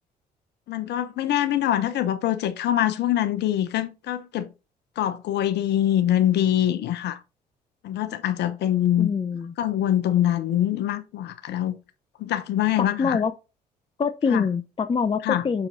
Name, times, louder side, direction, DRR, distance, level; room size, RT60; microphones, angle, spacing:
voice 1, 0.7-4.5 5.0-7.2 7.8-9.1 9.6-11.8 12.2-13.2 14.3-14.4 15.2-15.4, left 11 dB, 60° left, 0.9 m, -24 dB
voice 2, 9.0-9.5 12.8-13.3 14.0-15.7, left 5 dB, 25° left, 0.6 m, -25 dB
7.1 x 6.2 x 2.7 m
hypercardioid pair, 50°, 20 cm